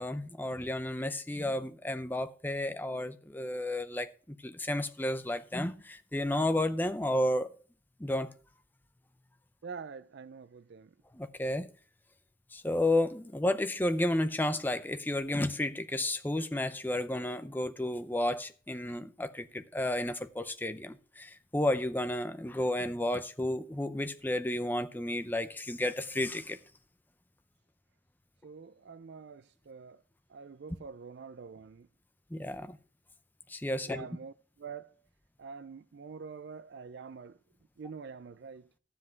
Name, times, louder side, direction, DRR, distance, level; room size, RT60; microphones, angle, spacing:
voice 1, 0.0-7.5 8.0-8.3 11.1-11.7 12.5-26.6 32.3-32.8 33.5-34.1, left 1 dB, 10° left, 0.5 m, -32 dB
voice 2, 9.6-10.9 28.4-30.0 30.3-31.9 33.8-34.9 35.4-37.4 37.8-38.7, right 5 dB, 55° right, 0.4 m, -46 dB
12.0 x 7.7 x 4.5 m
head